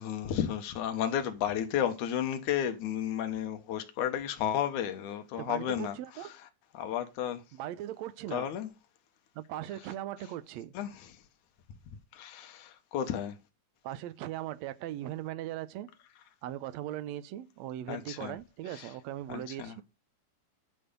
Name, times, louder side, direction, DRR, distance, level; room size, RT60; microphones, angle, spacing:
voice 1, 0.0-6.0 6.7-7.4 8.3-8.7 10.7-10.9 12.1-13.4 17.9-18.4 18.7-18.9 19.3-19.8, left 10 dB, 75° left, 2.6 m, -32 dB
voice 2, 5.4-6.4 7.5-8.5 9.3-10.7 13.8-15.9 16.4-19.8, right 13 dB, 75° right, 1.7 m, -39 dB
11.0 x 5.4 x 6.7 m
omnidirectional pair, 3.6 m